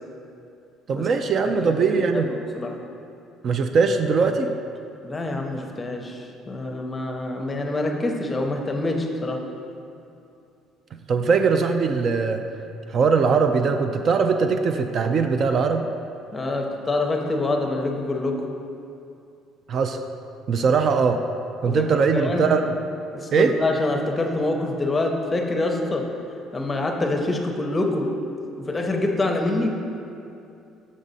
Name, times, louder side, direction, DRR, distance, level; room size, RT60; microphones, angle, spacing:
voice 1, 0.9-2.3 3.4-4.5 11.1-12.4 12.9-15.9 19.7-20.0 20.5-21.2 21.6-22.7 23.3-23.5, right 5 dB, 45° right, 7 dB, 0.3 m, -21 dB
voice 2, 1.4-1.8 2.1-2.8 5.0-9.4 16.3-18.4 21.6-21.9 22.1-22.5 23.1-26.1 26.5-28.1 28.6-29.7, left 2 dB, 20° left, 2 dB, 0.7 m, -26 dB
6.3 x 5.2 x 4.0 m, 2.6 s
cardioid pair, 115°, 0 cm